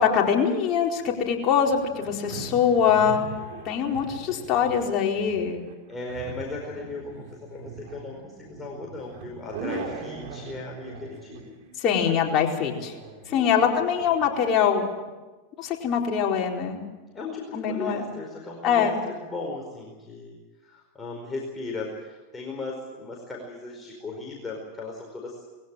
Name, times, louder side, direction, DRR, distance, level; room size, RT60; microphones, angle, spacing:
voice 1, 0.0-3.3 3.6-5.6 11.8-12.9 13.3-14.9 15.6-16.8 17.5-18.0 18.6-19.0, left 7 dB, 45° left, 0 dB, 4.4 m, -23 dB
sound 1, 1.6-14.3, right 4 dB, 60° right, 4.8 m, -41 dB
voice 2, 5.9-11.5 13.3-13.7 17.1-20.3 20.6-25.4, left 3 dB, 15° left, -1 dB, 4.8 m, -37 dB
21.5 x 16.5 x 9.0 m, 1.2 s
hypercardioid pair, 105°, 0 cm